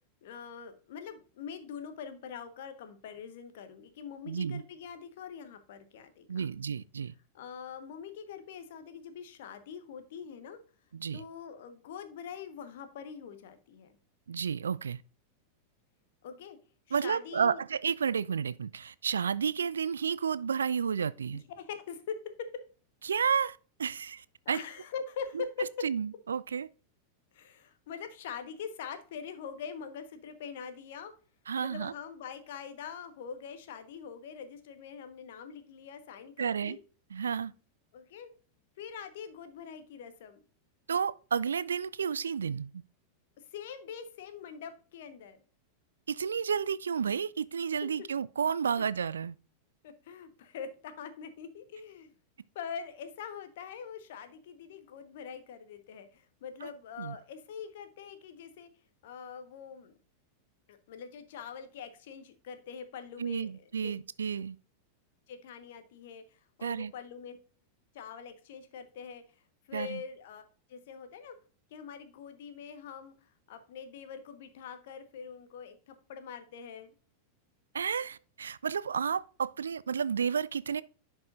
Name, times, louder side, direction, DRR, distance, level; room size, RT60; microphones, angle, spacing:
voice 1, 0.2-6.5 7.3-10.6 11.1-14.0 16.2-16.6 16.9-17.6 21.3-22.6 24.4-25.7 27.3-31.1 31.6-36.8 37.9-38.3 38.8-40.4 43.4-45.4 48.0-48.1 48.8-48.9 49.8-52.1 52.5-58.7 59.0-59.9 60.7-63.5 63.8-63.9 65.3-67.4 67.9-69.4 69.7-70.4 70.7-71.4 71.7-76.9, left 7 dB, 55° left, 1.2 m, -43 dB
voice 2, 4.3-4.6 6.3-7.1 10.9-11.2 14.3-15.0 16.9-21.4 23.0-24.6 25.3-25.4 25.8-26.7 31.5-31.9 36.4-36.8 37.1-37.5 40.9-42.8 46.1-49.4 56.6-56.7 57.0-57.2 63.2-64.6 66.6-66.9 69.7-70.0 77.7-80.8, right 7 dB, 70° right, 0.3 m, -31 dB
10.5 x 5.4 x 2.5 m
figure-of-eight pair, 90°, 0 cm